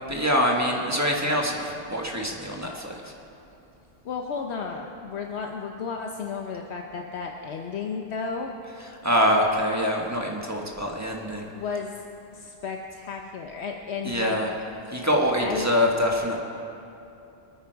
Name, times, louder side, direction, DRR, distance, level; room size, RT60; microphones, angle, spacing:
voice 1, 0.1-3.1 9.0-11.4 14.0-14.5 14.9-16.4, equal, 15° right, -1 dB, 1.6 m, -24 dB
voice 2, 4.0-8.5 11.5-12.0 12.3-14.4 15.4-15.7, left 5 dB, 75° left, 2 dB, 1.1 m, -33 dB
26.0 x 9.2 x 4.6 m, 2.8 s
omnidirectional pair, 1.1 m